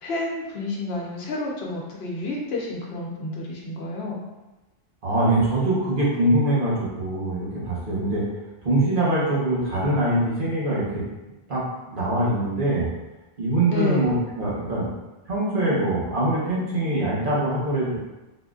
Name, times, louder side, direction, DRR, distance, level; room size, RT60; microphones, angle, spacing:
voice 1, 0.0-4.2 13.7-14.1, left 2 dB, 75° left, -2 dB, 1.0 m, -30 dB
voice 2, 5.0-8.3 8.6-11.0 11.5-12.9 13.4-14.9 15.3-18.0, right 1 dB, 55° right, -7 dB, 1.2 m, -23 dB
4.1 x 2.6 x 2.4 m, 1.1 s
omnidirectional pair, 1.1 m